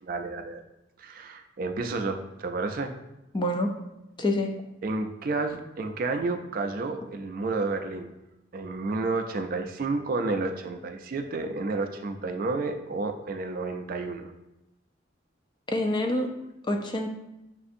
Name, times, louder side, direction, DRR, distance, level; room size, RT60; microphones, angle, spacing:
voice 1, 0.0-0.6 1.0-2.9 4.8-8.1 8.5-14.3, right 3 dB, 50° right, 6 dB, 0.4 m, -31 dB
voice 2, 3.3-3.7 4.2-4.5 15.7-16.3 16.7-17.1, left 1 dB, 25° left, 3 dB, 0.4 m, -26 dB
6.6 x 2.5 x 2.6 m, 0.93 s
head